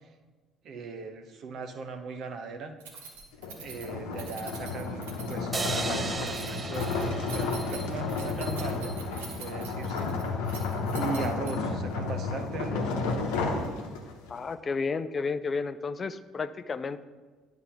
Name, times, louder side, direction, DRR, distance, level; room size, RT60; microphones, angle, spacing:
voice 1, 0.6-2.7 3.6-9.1 9.4-10.6 10.9-13.0, right 4 dB, 55° right, 7 dB, 0.8 m, -38 dB
Keys jangling, 2.8-11.8, right 5 dB, 80° right, 1.1 m, -45 dB
sound 1, 3.3-14.3, left 3 dB, 75° left, 0.9 m, -32 dB
sound 2, 5.5-8.8, right 3 dB, 25° right, 0.6 m, -37 dB
voice 2, 14.3-17.0, left 4 dB, 35° left, 13 dB, 0.4 m, -32 dB
9.7 x 3.5 x 5.8 m, 1.3 s
hypercardioid pair, 55°, 0 cm